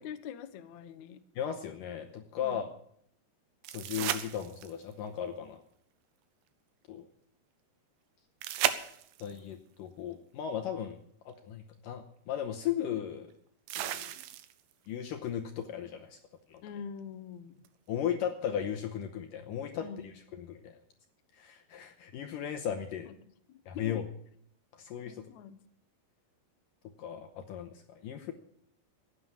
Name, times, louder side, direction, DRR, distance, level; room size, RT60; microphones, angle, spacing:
voice 1, 0.0-1.2 2.3-2.6 16.6-17.6 19.8-20.2 23.0-23.2 23.5-24.1 25.1-25.6, left 7 dB, 90° left, 8 dB, 1.6 m, -44 dB
voice 2, 1.4-2.6 3.7-5.6 6.9-7.1 9.2-11.0 11.3-13.3 13.8-14.0 14.9-16.2 16.5-16.6 17.9-19.9 20.4-20.8 21.4-23.1 23.7-24.0 24.7-25.3 27.0-28.3, left 9 dB, 75° left, 4 dB, 2.1 m, -36 dB
sound 1, 3.6-4.9 8.4-9.4 11.3-11.4 13.7-14.7 17.6-17.7, right 12 dB, 80° right, 2.8 m, -34 dB
15.5 x 9.6 x 7.3 m, 0.67 s
omnidirectional pair, 4.8 m